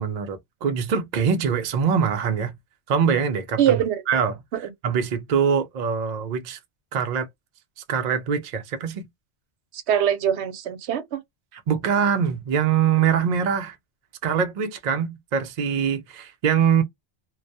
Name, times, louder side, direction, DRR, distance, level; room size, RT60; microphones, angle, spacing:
voice 1, 0.0-2.6 2.9-4.4 4.8-6.6 6.9-7.3 7.8-9.1 11.5-13.8 14.2-16.8, right 7 dB, 60° right, 0.4 m, -23 dB
voice 2, 3.6-4.0 4.6-4.7 9.7-11.2, right 9 dB, 75° right, 0.8 m, -23 dB
2.2 x 2.1 x 2.5 m
omnidirectional pair, 1.2 m